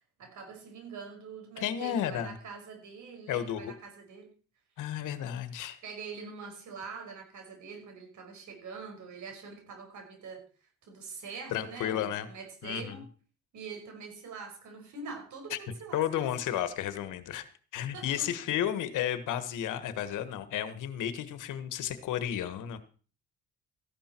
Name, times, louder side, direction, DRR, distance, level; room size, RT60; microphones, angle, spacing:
voice 1, 0.2-4.3 5.8-10.4 10.8-13.1 13.5-16.6 17.9-18.3, right 5 dB, 75° right, 3 dB, 5.5 m, -44 dB
voice 2, 1.6-2.4 3.3-3.7 4.8-5.8 11.5-12.3 12.6-13.0 15.5-15.6 15.9-17.4 17.7-22.8, left 10 dB, 85° left, 12 dB, 1.5 m, -32 dB
14.5 x 11.5 x 4.5 m, 0.39 s
cardioid pair, 90°, 30 cm